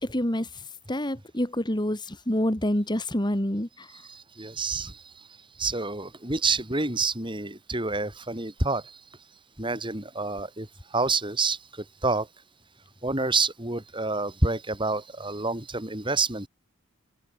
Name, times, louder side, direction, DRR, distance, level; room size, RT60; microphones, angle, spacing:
voice 1, 0.0-0.6 0.9-3.9, left 1 dB, 20° left, 2.5 m, -27 dB
voice 2, 3.9-5.3 5.6-9.0 9.6-12.3 13.0-16.5, right 3 dB, 25° right, 4.8 m, -28 dB
open air
head